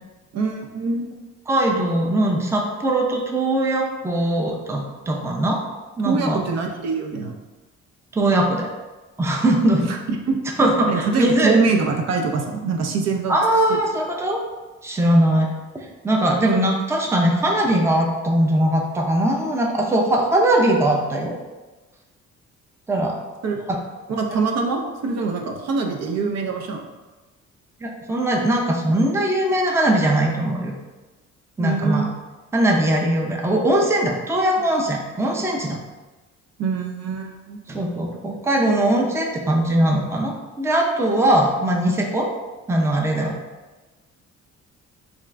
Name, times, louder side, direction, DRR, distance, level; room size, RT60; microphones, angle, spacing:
voice 1, 0.3-1.1 6.0-7.4 9.9-10.0 10.3-10.4 10.9-13.4 23.4-23.6 24.1-26.9 31.6-32.1 36.6-37.6, right 4 dB, 60° right, 2 dB, 0.6 m, -24 dB
voice 2, 1.5-5.6 6.0-6.4 8.1-8.7 9.2-9.9 10.6-11.8 13.3-14.4 14.8-15.5 15.7-21.4 22.9-23.1 23.7-23.8 27.8-30.7 31.6-32.1 32.5-35.8 37.7-42.3 42.7-43.4, right 1 dB, 10° right, 0 dB, 0.5 m, -20 dB
3.5 x 2.5 x 3.2 m, 1.2 s
cardioid pair, 90°, 30 cm